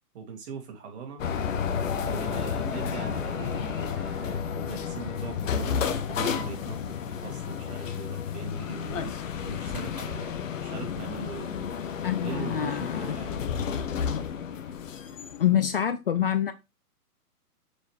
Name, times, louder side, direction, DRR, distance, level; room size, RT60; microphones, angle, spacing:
voice 1, 0.1-1.2 2.0-9.1 9.5-11.6 12.2-13.4, right 6 dB, 45° right, 2.4 m, -40 dB
sound 1, 1.2-15.8, left 7 dB, 55° left, 1.0 m, -31 dB
voice 2, 12.0-13.2 15.4-16.5, left 10 dB, 40° left, 0.5 m, -26 dB
6.3 x 4.9 x 3.3 m
figure-of-eight pair, 125°, 47 cm